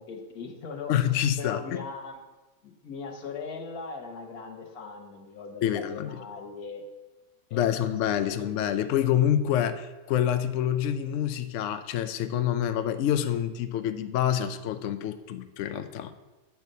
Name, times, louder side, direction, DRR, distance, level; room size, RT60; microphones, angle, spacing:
voice 1, 0.0-0.9 1.4-2.2 2.6-6.8 7.5-7.7 8.0-8.9, left 5 dB, 90° left, 3 dB, 1.6 m, -40 dB
voice 2, 0.9-1.8 5.6-6.2 7.5-16.1, left 10 dB, 70° left, 10 dB, 0.8 m, -27 dB
8.2 x 4.5 x 6.6 m, 1.1 s
omnidirectional pair, 1.5 m